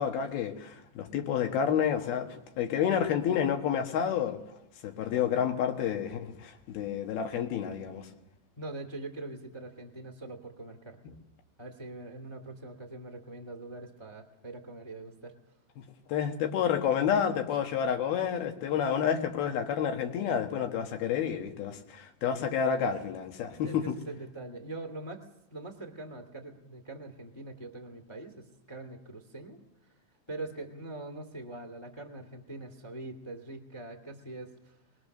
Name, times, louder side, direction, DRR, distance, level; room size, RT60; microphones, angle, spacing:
voice 1, 0.0-4.4 4.8-8.1 16.1-24.0, left 8 dB, 80° left, 5 dB, 3.4 m, -29 dB
voice 2, 8.6-11.0 11.6-15.4 23.6-25.2 25.5-29.6 30.3-34.7, right 2 dB, 10° left, 4 dB, 1.2 m, -43 dB
24.5 x 20.0 x 6.6 m, 0.87 s
omnidirectional pair, 4.3 m